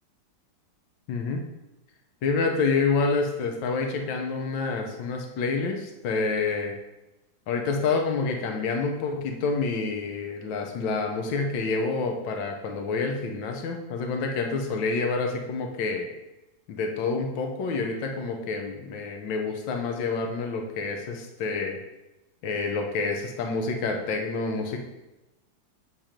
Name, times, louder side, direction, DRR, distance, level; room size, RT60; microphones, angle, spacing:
voice 1, 1.1-1.4 2.2-6.7 7.5-16.1 16.7-21.8 22.4-24.8, left 4 dB, 80° left, 3 dB, 1.7 m, -28 dB
7.4 x 4.6 x 5.1 m, 1.0 s
omnidirectional pair, 2.1 m